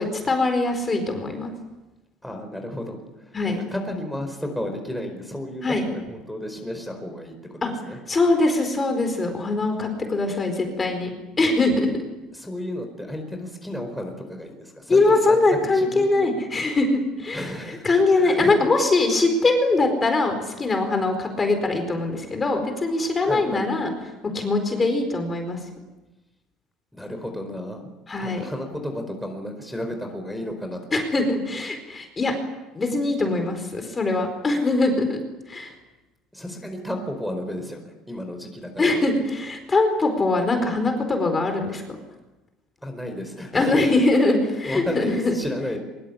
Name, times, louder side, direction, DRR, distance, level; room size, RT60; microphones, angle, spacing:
voice 1, 0.0-1.5 3.3-3.6 5.6-5.8 7.6-7.7 8.1-11.1 11.4-11.9 14.9-23.9 24.3-25.6 28.1-28.4 30.9-32.3 32.7-35.2 35.5-35.7 38.8-41.8 43.5-45.4, left 2 dB, 20° left, 6 dB, 4.6 m, -22 dB
voice 2, 2.2-7.4 7.6-8.0 12.3-16.3 17.3-17.8 18.1-18.5 23.2-23.7 26.9-27.9 28.1-30.8 31.2-31.3 36.3-39.3 42.8-43.9 44.6-45.8, left 1 dB, ahead, 3 dB, 4.6 m, -33 dB
24.5 x 23.5 x 8.9 m, 1.1 s
cardioid pair, 155°, 0 cm